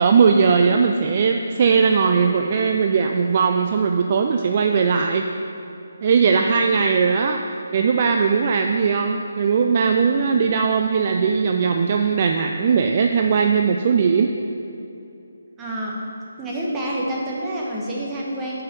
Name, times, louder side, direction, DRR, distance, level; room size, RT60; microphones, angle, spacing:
voice 1, 0.0-5.3 6.0-7.4 7.7-14.3, right 5 dB, 40° right, 3 dB, 0.3 m, -19 dB
voice 2, 15.6-15.9 16.4-18.6, right 1 dB, 10° right, -5 dB, 1.1 m, -27 dB
6.2 x 4.7 x 6.6 m, 2.7 s
figure-of-eight pair, 145°, 0 cm